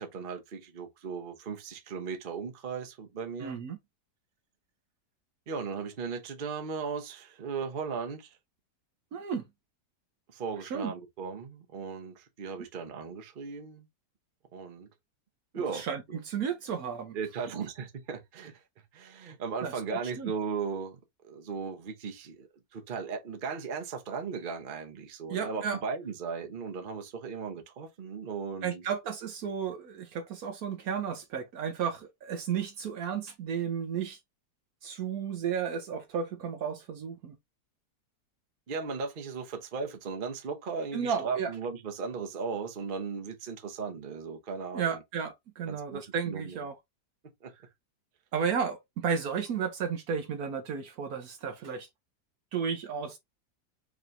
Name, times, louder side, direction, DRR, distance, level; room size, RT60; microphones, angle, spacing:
voice 1, 0.0-3.6 5.5-8.4 10.3-13.9 14.5-14.9 15.5-15.8 17.1-18.6 18.9-21.0 21.2-28.8 38.7-45.0 45.7-46.6 47.4-47.5, right 5 dB, 40° right, 0.9 m, -37 dB
voice 2, 3.4-3.8 9.1-9.4 10.6-10.9 15.7-17.2 19.6-20.3 25.3-25.8 28.6-34.2 34.8-37.4 40.9-41.5 44.7-46.7 48.3-51.9 52.5-53.2, right 7 dB, 65° right, 1.1 m, -33 dB
4.9 x 3.0 x 2.5 m
omnidirectional pair, 1.8 m